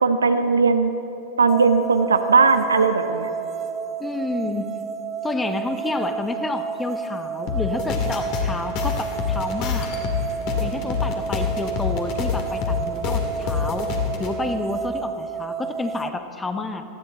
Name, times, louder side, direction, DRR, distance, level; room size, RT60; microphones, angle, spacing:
voice 1, 0.0-0.9 1.4-3.3, right 4 dB, 75° right, 9 dB, 0.8 m, -18 dB
sound 1, 1.5-16.1, right 6 dB, 25° right, 0.9 m, -31 dB
voice 2, 4.0-4.7 5.2-9.9 10.6-13.9 14.2-16.8, left 3 dB, 10° left, 7 dB, 1.1 m, -29 dB
sound 2, 7.5-14.3, left 6 dB, 45° left, 2.1 m, -26 dB
18.5 x 15.0 x 4.3 m, 2.9 s
figure-of-eight pair, 90°, 0 cm